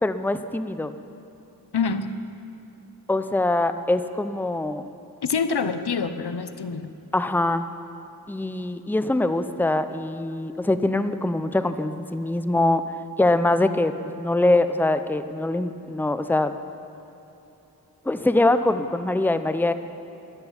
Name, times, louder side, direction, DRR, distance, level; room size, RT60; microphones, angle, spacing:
voice 1, 0.0-0.9 3.1-4.9 7.1-7.7 8.3-12.8 13.2-16.6 18.1-19.7, left 2 dB, 5° left, 10 dB, 0.6 m, -23 dB
voice 2, 1.7-2.1 5.2-6.9, left 5 dB, 85° left, 10 dB, 0.8 m, -26 dB
13.5 x 11.0 x 7.2 m, 3.0 s
wide cardioid pair, 40°, 38 cm